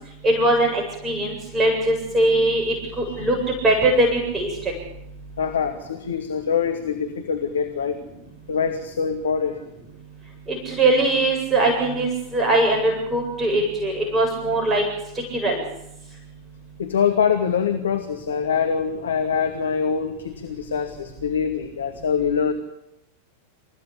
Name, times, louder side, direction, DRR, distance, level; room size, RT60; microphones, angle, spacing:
voice 1, 0.2-3.4 3.6-4.5 10.5-14.8 15.3-15.6, right 1 dB, 15° right, 0 dB, 8.0 m, -21 dB
voice 2, 2.8-3.3 5.4-8.0 8.5-9.6 12.5-12.6 16.8-22.5, left 6 dB, 65° left, 5 dB, 2.3 m, -24 dB
28.5 x 16.0 x 8.8 m, 0.84 s
figure-of-eight pair, 90°, 0 cm